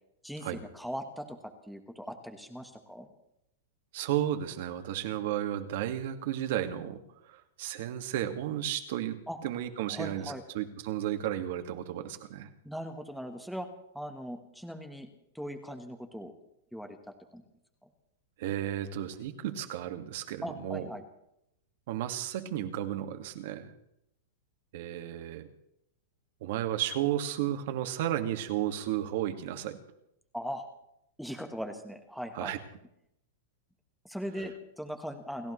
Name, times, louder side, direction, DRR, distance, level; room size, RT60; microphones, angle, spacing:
voice 1, 0.2-3.1 9.3-9.4 9.9-10.4 12.6-13.7 13.9-15.1 15.3-16.3 16.7-17.0 17.3-17.4 20.4-21.0 30.3-30.7 31.2-32.5 34.0-35.5, equal, ahead, 5 dB, 1.4 m, -39 dB
voice 2, 3.9-7.0 7.3-9.2 9.4-12.5 18.4-20.9 21.9-23.7 24.7-25.5 26.4-29.8 32.3-32.6, right 12 dB, 55° right, 6 dB, 2.0 m, -33 dB
29.5 x 15.0 x 3.3 m, 0.78 s
supercardioid pair, 160°, 0 cm